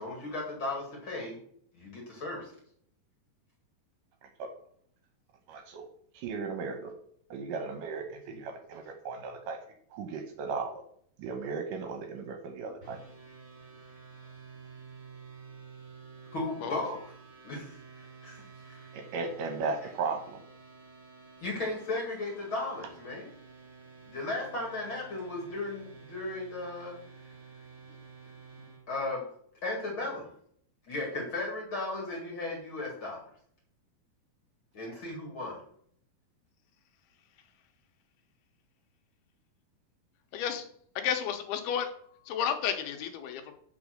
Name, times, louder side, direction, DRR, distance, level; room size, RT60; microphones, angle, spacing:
voice 1, 0.0-1.4 1.7-2.5 16.3-17.0 17.4-18.9 21.4-23.3 24.1-26.9 28.6-29.2 29.6-30.3 30.9-33.2 34.7-35.6, left 2 dB, 45° left, -1 dB, 2.0 m, -36 dB
voice 2, 5.5-5.9 6.1-6.9 7.3-9.6 9.9-10.8 11.2-13.0 18.9-20.4, right 4 dB, 75° right, 6 dB, 2.1 m, -36 dB
sound 1, 12.8-28.8, right 5 dB, 25° right, 2.0 m, -51 dB
voice 3, 40.3-40.7 41.0-41.9 42.3-43.5, left 8 dB, 85° left, 6 dB, 2.9 m, -32 dB
6.8 x 5.1 x 6.4 m, 0.63 s
omnidirectional pair, 4.5 m